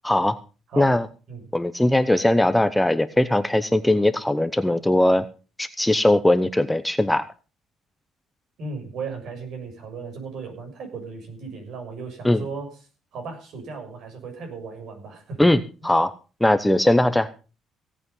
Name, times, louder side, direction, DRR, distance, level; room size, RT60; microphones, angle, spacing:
voice 1, 0.0-0.4 0.8-1.1 1.5-5.3 5.6-7.2 12.2-12.4 15.4-16.1 16.4-17.3, left 1 dB, 5° left, 11 dB, 0.8 m, -20 dB
voice 2, 8.6-12.8 13.1-15.5, right 4 dB, 65° right, 4 dB, 7.0 m, -36 dB
17.0 x 8.6 x 5.5 m, 0.34 s
cardioid pair, 125°, 0 cm